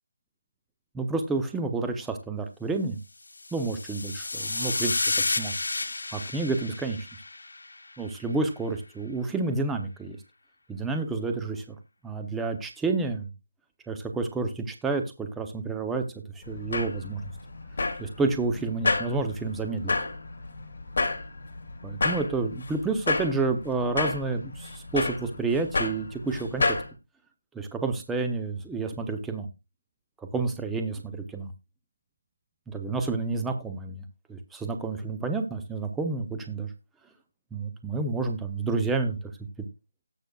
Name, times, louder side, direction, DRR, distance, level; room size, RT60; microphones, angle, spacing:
voice 1, 0.9-3.0 3.5-5.6 6.1-7.0 8.0-10.2 10.7-11.8 12.0-13.3 13.9-16.0 16.4-17.2 18.0-19.9 21.8-26.8 27.5-29.5 30.3-31.5 32.7-34.0 34.3-36.7 37.5-39.2, right 3 dB, 5° right, 6 dB, 0.6 m, -29 dB
sound 1, 3.4-7.9, left 2 dB, 75° left, 1.7 m, -31 dB
sound 2, 16.4-26.9, left 3 dB, 45° left, 2.5 m, -31 dB
18.0 x 6.6 x 2.3 m, 0.25 s
figure-of-eight pair, 175°, 0 cm